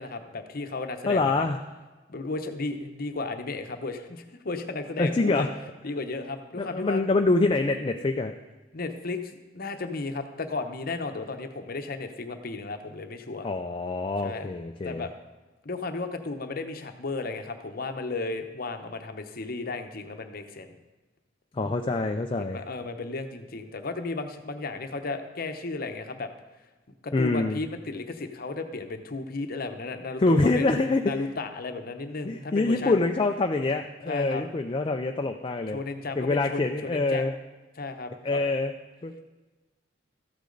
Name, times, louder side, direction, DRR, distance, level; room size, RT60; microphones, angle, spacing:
voice 1, 0.0-1.5 2.1-5.5 5.8-7.0 8.7-13.5 14.2-14.5 14.8-15.1 15.6-20.7 22.4-26.3 27.0-33.0 34.1-34.4 35.7-37.2 37.8-38.5, left 3 dB, 50° left, 7 dB, 0.8 m, -34 dB
voice 2, 1.1-1.6 5.0-5.5 6.6-8.3 13.4-15.0 21.5-22.6 27.1-27.6 30.2-31.2 32.2-35.8 36.2-37.3 38.2-38.7 39.0-39.1, left 3 dB, 30° left, 4 dB, 0.4 m, -25 dB
13.5 x 8.4 x 3.9 m, 1.2 s
head